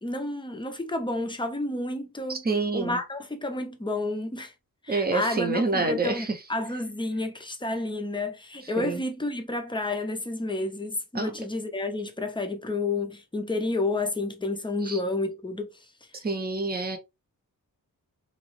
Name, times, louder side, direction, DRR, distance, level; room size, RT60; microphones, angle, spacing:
voice 1, 0.0-2.5 2.7-4.5 4.8-15.7, left 2 dB, 15° left, 0.7 m, -30 dB
voice 2, 2.3-3.0 4.9-6.4 8.8-9.0 11.1-11.3 14.8-15.0 16.2-17.0, right 3 dB, 25° right, 0.9 m, -27 dB
3.9 x 3.1 x 3.2 m
wide cardioid pair, 150°, 35 cm